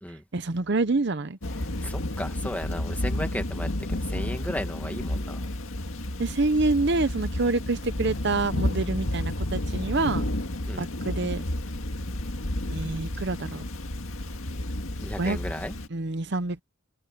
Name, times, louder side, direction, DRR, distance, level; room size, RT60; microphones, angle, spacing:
voice 1, 0.3-1.4 6.2-10.3 10.8-11.4 12.7-13.6 15.2-15.4 15.9-16.6, right 3 dB, 55° right, 0.8 m, -27 dB
Thunder / Rain, 1.4-15.9, left 1 dB, 80° left, 1.9 m, -31 dB
voice 2, 1.6-5.5 10.7-10.9 15.0-15.8, left 1 dB, 5° left, 1.8 m, -35 dB
head